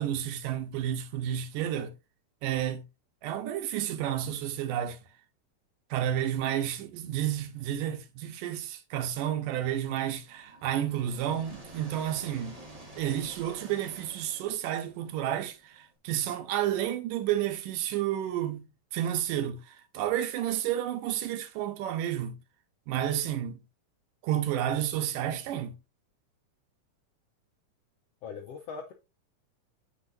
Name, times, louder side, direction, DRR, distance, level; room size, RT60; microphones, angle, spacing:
voice 1, 0.0-1.9 2.4-2.8 3.2-5.0 5.9-12.6 13.0-22.4 22.9-23.6 24.2-25.8, right 11 dB, 85° right, 2.4 m, -31 dB
sound 1, 10.0-15.9, right 1 dB, 15° right, 1.3 m, -50 dB
voice 2, 28.2-28.9, left 5 dB, 80° left, 1.4 m, -40 dB
8.6 x 5.1 x 2.6 m
omnidirectional pair, 3.8 m